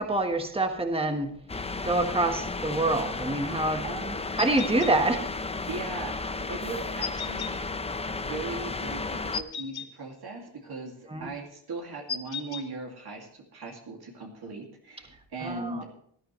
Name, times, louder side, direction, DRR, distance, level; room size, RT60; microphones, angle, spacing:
voice 1, 0.0-1.3 1.8-3.8 4.4-5.3 11.1-11.3 15.4-15.8, right 2 dB, 15° right, 5 dB, 1.3 m, -26 dB
sound 1, 1.5-9.4, left 3 dB, 15° left, 0.5 m, -33 dB
voice 2, 3.8-4.2 5.7-6.1 6.5-7.6 8.1-10.9 11.2-15.8, right 3 dB, 60° right, 0 dB, 2.4 m, -38 dB
sound 2, 4.4-4.9 7.0-7.5 9.3-9.9 12.1-12.6, left 7 dB, 60° left, 1.2 m, -35 dB
18.5 x 12.5 x 3.2 m, 0.63 s
wide cardioid pair, 145°, 42 cm